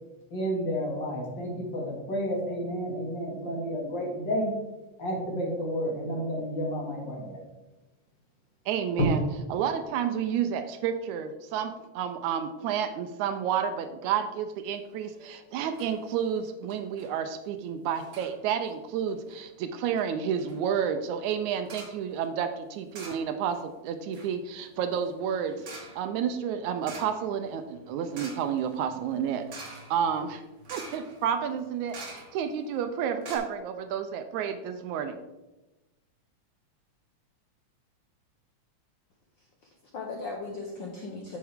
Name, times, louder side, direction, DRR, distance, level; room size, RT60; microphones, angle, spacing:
voice 1, 0.3-4.5 5.0-7.4, equal, 40° left, -3 dB, 2.5 m, -31 dB
voice 2, 8.7-9.2 9.5-29.4 29.9-30.4 30.7-35.2, right 8 dB, 80° right, 8 dB, 1.9 m, -30 dB
sound 1, 15.1-15.4 15.7-16.0 16.3-16.4 16.7-17.1 18.0-18.4 19.1-19.4 20.0-20.1 20.4-20.6 21.6-22.0 22.9-23.6 23.9-32.6 32.9-33.0 33.2-33.4, right 3 dB, 45° right, 1.5 m, -46 dB
voice 3, 39.4-41.4, left 3 dB, 85° left, 0 dB, 1.0 m, -38 dB
9.3 x 7.3 x 3.5 m, 1.1 s
omnidirectional pair, 3.5 m